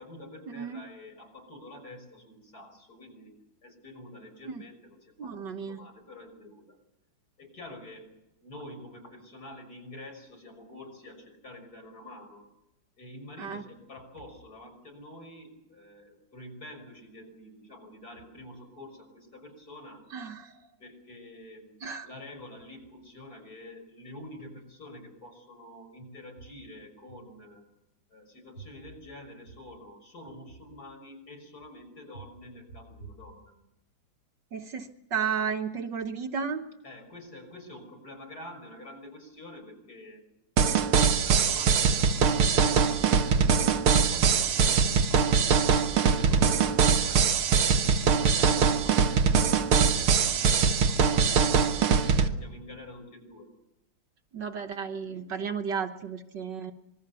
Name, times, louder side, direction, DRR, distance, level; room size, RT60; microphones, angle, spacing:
voice 1, 0.0-3.3 3.6-6.8 7.4-8.1 8.4-12.4 13.0-20.0 20.8-21.7 22.0-27.6 28.1-33.5 36.8-40.3 40.7-45.6 46.1-49.2 49.7-53.5, left 1 dB, 45° left, 5 dB, 6.6 m, -47 dB
voice 2, 5.2-5.8 13.4-13.6 20.1-20.5 21.8-22.1 34.5-36.6 54.3-56.7, right 6 dB, 60° right, 7 dB, 1.8 m, -33 dB
sound 1, 40.6-52.3, right 6 dB, 90° right, 2.2 m, -22 dB
26.5 x 22.0 x 6.9 m, 0.89 s
omnidirectional pair, 2.3 m